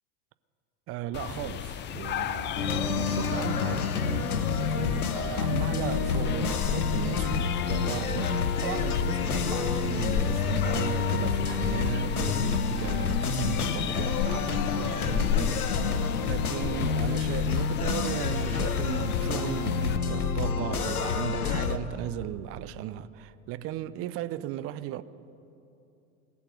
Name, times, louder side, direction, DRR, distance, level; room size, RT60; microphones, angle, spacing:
voice 1, 0.9-25.0, right 13 dB, 35° right, 0.6 m, -36 dB
sound 1, 1.1-20.0, left 9 dB, 25° left, 0.6 m, -35 dB
sound 2, 2.6-21.8, left 5 dB, 85° left, 0.9 m, -28 dB
19.0 x 7.1 x 9.1 m
hypercardioid pair, 85°, 43 cm